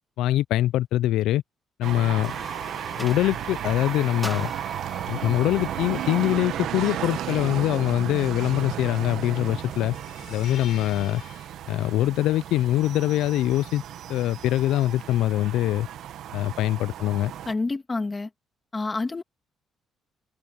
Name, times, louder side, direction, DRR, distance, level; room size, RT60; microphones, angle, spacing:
voice 1, 0.2-1.4 1.8-2.3 3.0-4.5 5.1-10.0 10.3-11.2 11.7-13.8 14.1-15.9 16.3-17.3, left 14 dB, 85° left, 0.3 m, -23 dB
sound 1, 1.8-17.5, right 11 dB, 60° right, 1.2 m, -34 dB
sound 2, 2.1-6.5, equal, ahead, 2.0 m, -40 dB
sound 3, 6.7-11.6 14.3-15.4, left 11 dB, 60° left, 5.4 m, -48 dB
voice 2, 17.5-18.3 18.7-19.2, left 3 dB, 15° left, 1.9 m, -28 dB
open air
cardioid pair, 160°, 0 cm